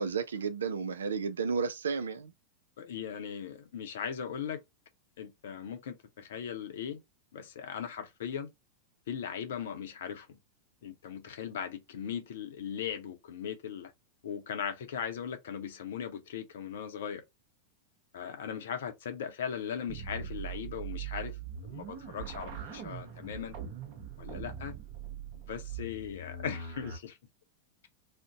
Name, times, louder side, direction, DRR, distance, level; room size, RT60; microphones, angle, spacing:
voice 1, 0.0-2.3, right 5 dB, 70° right, 0.4 m, -32 dB
voice 2, 2.8-4.6 5.2-7.0 7.3-8.5 9.1-10.4 10.8-13.9 14.2-17.2 18.1-21.4 21.7-23.5 24.2-24.7 25.3-27.2, left 8 dB, 60° left, 0.6 m, -38 dB
sound 1, 19.9-27.0, right 7 dB, 45° right, 0.7 m, -41 dB
2.5 x 2.1 x 3.6 m
figure-of-eight pair, 90°, 0 cm